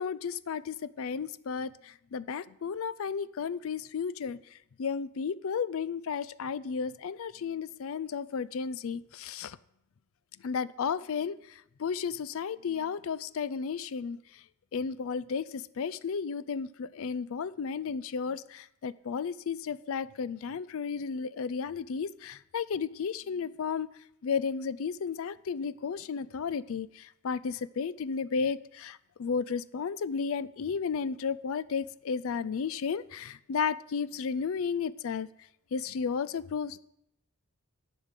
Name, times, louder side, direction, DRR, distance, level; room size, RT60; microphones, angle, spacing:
voice 1, 0.0-4.4 4.8-9.6 10.4-11.3 11.8-14.2 14.7-23.9 24.2-35.3 35.7-36.8, left 6 dB, 65° left, 0.4 m, -33 dB
10.5 x 5.3 x 8.1 m
head